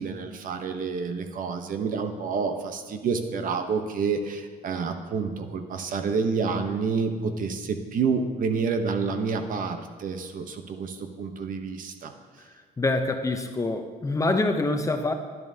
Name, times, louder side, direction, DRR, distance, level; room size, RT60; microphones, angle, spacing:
voice 1, 0.0-12.5, right 5 dB, 55° right, 7 dB, 0.9 m, -29 dB
voice 2, 12.8-15.1, left 2 dB, 20° left, 6 dB, 0.7 m, -25 dB
10.5 x 10.5 x 2.8 m, 1.5 s
cardioid pair, 110°, 17 cm